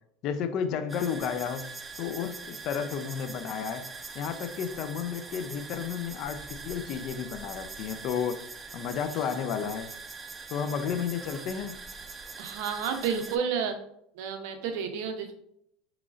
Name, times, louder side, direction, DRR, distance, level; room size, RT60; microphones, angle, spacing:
voice 1, 0.2-1.7 2.0-3.9 4.1-8.4 8.7-9.9 10.5-11.7, left 7 dB, 50° left, 10 dB, 0.4 m, -32 dB
sound 1, 0.9-13.4, right 4 dB, 20° right, 0.3 m, -43 dB
voice 2, 12.4-13.8 14.2-15.3, right 6 dB, 70° right, 7 dB, 0.6 m, -31 dB
3.7 x 3.0 x 2.4 m, 0.72 s
supercardioid pair, 125°, 0 cm